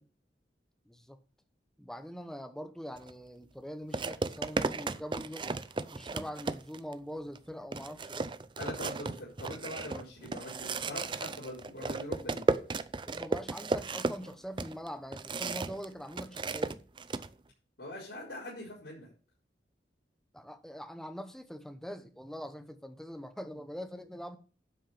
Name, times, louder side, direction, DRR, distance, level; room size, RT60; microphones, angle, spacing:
voice 1, 0.9-1.2 1.8-5.7 5.9-8.3 13.1-16.8 20.3-24.4, equal, 5° left, 0.9 m, -43 dB
sound 1, 3.0-3.1 3.9-6.9 7.4-7.5 7.7-15.9 16.1-17.3, right 3 dB, 30° right, 0.5 m, -34 dB
voice 2, 8.6-12.4 17.8-19.1, left 1 dB, 80° left, 4.9 m, -42 dB
11.5 x 6.3 x 5.3 m
head